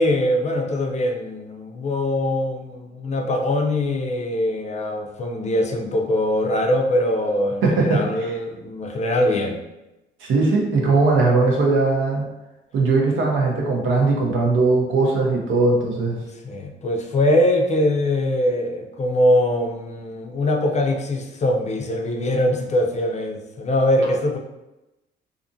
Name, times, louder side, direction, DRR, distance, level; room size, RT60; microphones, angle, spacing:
voice 1, 0.0-9.6 16.4-24.4, left 1 dB, 35° left, 2 dB, 0.4 m, -22 dB
voice 2, 7.6-8.3 10.2-12.3 12.7-16.2, right 3 dB, 80° right, -1 dB, 0.7 m, -19 dB
2.5 x 2.5 x 2.6 m, 0.97 s
cardioid pair, 90°, 20 cm